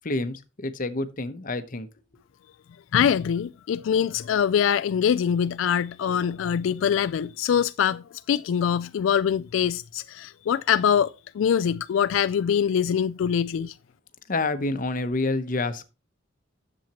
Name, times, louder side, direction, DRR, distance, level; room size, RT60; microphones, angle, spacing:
voice 1, 0.0-1.9 14.3-15.8, left 2 dB, 45° left, 0.8 m, -28 dB
voice 2, 2.9-13.7, left 8 dB, 90° left, 0.3 m, -24 dB
10.5 x 7.2 x 2.9 m
head